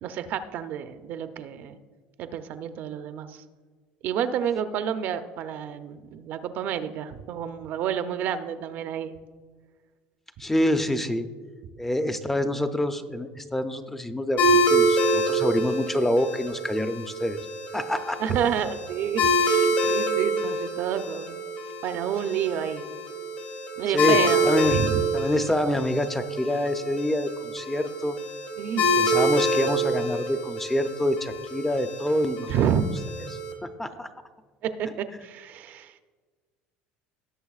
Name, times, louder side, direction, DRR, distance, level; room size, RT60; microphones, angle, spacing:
voice 1, 0.0-1.8 2.2-3.4 4.0-9.1 18.2-21.4 21.8-22.9 23.8-25.0 28.6-29.0 32.5-32.9 34.6-36.0, right 8 dB, 55° right, 10 dB, 0.6 m, -29 dB
voice 2, 10.4-11.3 11.8-17.4 17.7-18.2 23.9-24.8 25.1-28.2 29.0-32.5 33.6-34.1, left 1 dB, 10° left, 9 dB, 0.5 m, -26 dB
sound 1, 14.4-33.5, right 1 dB, 60° left, 1.7 m, -26 dB
17.5 x 6.6 x 2.4 m, 1.5 s
supercardioid pair, 115°, 4 cm